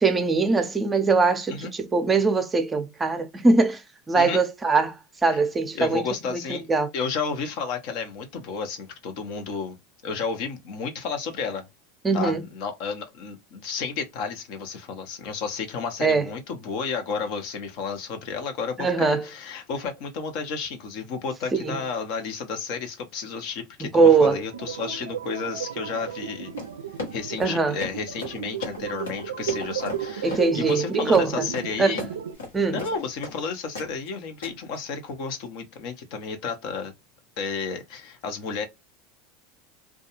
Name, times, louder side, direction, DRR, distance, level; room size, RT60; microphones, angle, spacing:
voice 1, 0.0-6.0 6.3-6.4 6.7-6.9 12.0-12.4 16.0-16.3 18.8-19.2 21.5-21.8 23.9-24.4 27.4-27.8 30.2-31.5 31.8-32.0 32.5-32.8, right 4 dB, 20° right, 0.5 m, -21 dB
voice 2, 5.7-6.6 6.9-9.8 10.0-11.7 12.1-26.5 27.1-32.1 32.7-36.9 37.4-38.7, left 5 dB, 60° left, 0.7 m, -32 dB
sound 1, 24.5-32.4, right 8 dB, 85° right, 0.4 m, -34 dB
Run, 26.5-33.4 33.8-34.1 34.4-34.8, left 3 dB, 85° left, 1.0 m, -37 dB
2.3 x 2.2 x 2.9 m
hypercardioid pair, 90°, 0 cm